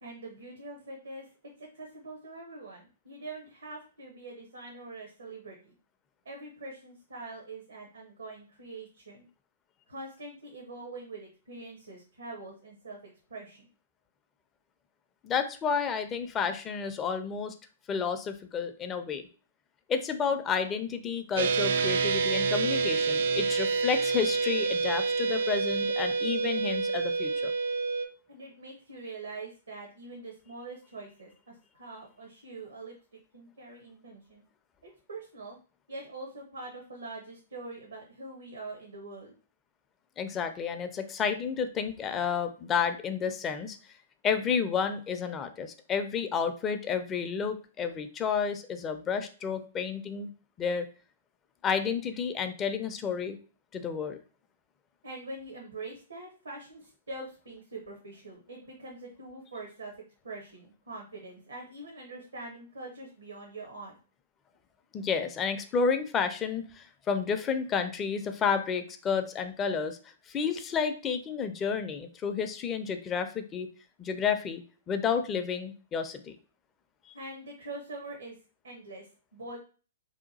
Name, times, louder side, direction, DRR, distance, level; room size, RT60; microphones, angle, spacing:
voice 1, 0.0-1.3 1.6-5.7 6.2-9.3 9.9-13.7 28.3-34.4 34.8-35.6 35.9-39.3 55.0-59.9 60.2-64.0 77.1-78.4 78.6-79.6, right 2 dB, 80° right, 0 dB, 0.8 m, -44 dB
voice 2, 15.2-17.5 17.9-19.2 19.9-27.5 40.2-43.8 44.2-50.3 50.6-50.9 51.6-53.4 53.7-54.2 64.9-70.0 70.3-73.7 74.0-74.6 74.9-76.3, left 6 dB, 25° left, 8 dB, 0.4 m, -31 dB
sound 1, 21.4-28.1, right 4 dB, 65° right, 0.3 m, -28 dB
2.8 x 2.3 x 3.9 m, 0.38 s
hypercardioid pair, 120°, 0 cm